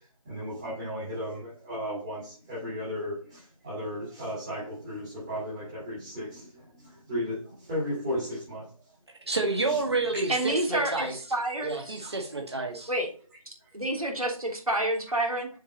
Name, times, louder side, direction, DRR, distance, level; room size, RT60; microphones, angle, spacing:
voice 1, 0.3-8.7 9.7-9.8 12.0-12.1, equal, 10° right, -10 dB, 2.2 m, -35 dB
voice 2, 9.3-11.2 11.6-12.9, right 3 dB, 45° right, 3 dB, 1.7 m, -29 dB
voice 3, 10.3-12.0 12.9-13.1 13.4-15.5, right 1 dB, 75° right, 0 dB, 3.3 m, -29 dB
7.0 x 5.2 x 4.3 m, 0.40 s
figure-of-eight pair, 165°, 19 cm